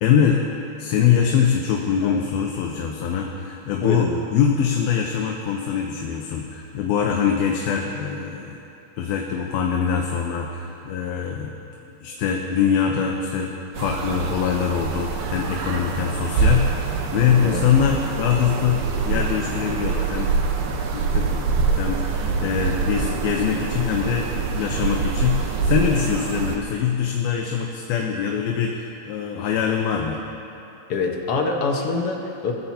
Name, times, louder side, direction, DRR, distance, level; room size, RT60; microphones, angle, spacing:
voice 1, 0.0-0.5 0.8-8.6 9.0-11.5 12.0-20.4 20.9-30.2, left 7 dB, 80° left, 0 dB, 2.8 m, -23 dB
voice 2, 3.8-4.2 17.4-17.6 30.9-32.5, left 4 dB, 60° left, 1 dB, 1.6 m, -25 dB
sound 1, 13.7-26.6, right 4 dB, 85° right, 3.1 m, -25 dB
27.5 x 15.0 x 2.9 m, 3.0 s
omnidirectional pair, 4.3 m